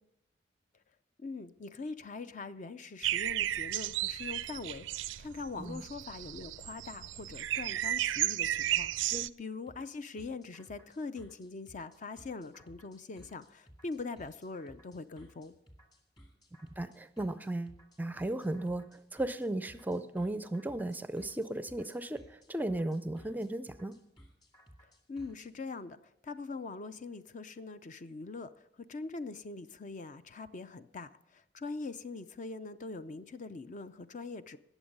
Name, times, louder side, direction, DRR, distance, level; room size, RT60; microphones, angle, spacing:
voice 1, 1.2-15.6 25.1-28.5 28.9-34.6, left 3 dB, 40° left, 12 dB, 0.5 m, -42 dB
sound 1, 3.0-9.3, right 13 dB, 80° right, 0.4 m, -34 dB
sound 2, 9.7-25.5, equal, 25° left, 2.1 m, -58 dB
voice 2, 16.8-24.0, right 1 dB, 10° right, 12 dB, 0.4 m, -36 dB
19.0 x 7.2 x 5.4 m, 0.80 s
head